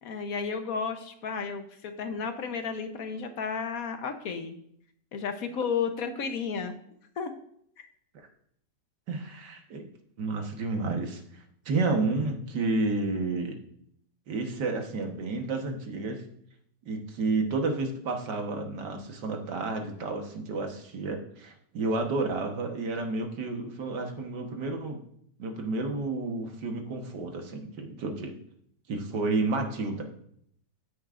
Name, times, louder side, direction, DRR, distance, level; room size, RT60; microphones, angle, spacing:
voice 1, 0.0-4.5 5.1-6.8 7.2-7.3, left 5 dB, 60° left, 7 dB, 1.2 m, -32 dB
voice 2, 9.1-9.9 10.2-13.6 14.3-16.2 16.9-25.0 25.4-28.4 28.9-30.1, right 3 dB, 75° right, 3 dB, 1.9 m, -31 dB
12.5 x 9.5 x 2.5 m, 0.68 s
omnidirectional pair, 1.9 m